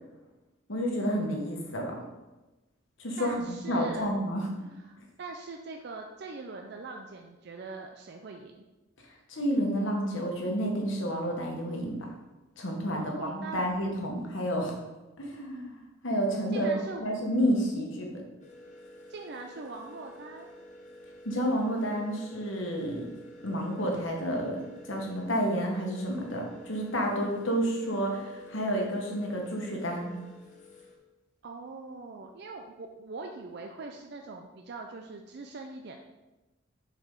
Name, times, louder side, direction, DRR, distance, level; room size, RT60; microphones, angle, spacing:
voice 1, 0.7-2.0 3.0-4.5 9.3-12.0 12.6-14.7 15.2-15.8 16.0-16.7 17.0-18.2 21.2-23.0 23.4-30.1, equal, 65° left, 0 dB, 1.3 m, -30 dB
voice 2, 3.2-4.1 4.8-8.6 12.9-13.7 16.5-17.0 19.1-20.5 31.4-36.0, right 3 dB, 50° right, 3 dB, 0.4 m, -42 dB
sound 1, 18.4-31.0, equal, 35° left, 0.9 m, -50 dB
6.7 x 4.9 x 3.8 m, 1.1 s
head